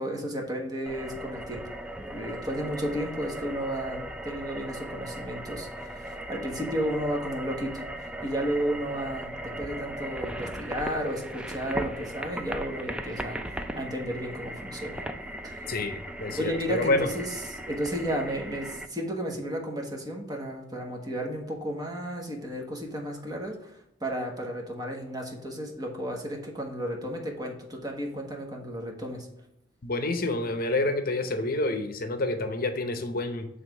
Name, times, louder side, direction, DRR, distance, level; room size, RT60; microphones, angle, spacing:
voice 1, 0.0-1.7 2.0-7.8 8.2-15.0 15.4-15.7 16.4-29.3, equal, 20° right, 1 dB, 1.3 m, -33 dB
sound 1, 0.9-18.9, right 1 dB, 5° right, 0.4 m, -38 dB
voice 2, 15.7-17.1 29.8-33.5, left 2 dB, 50° left, 7 dB, 0.8 m, -28 dB
7.4 x 3.4 x 6.0 m, 0.80 s
head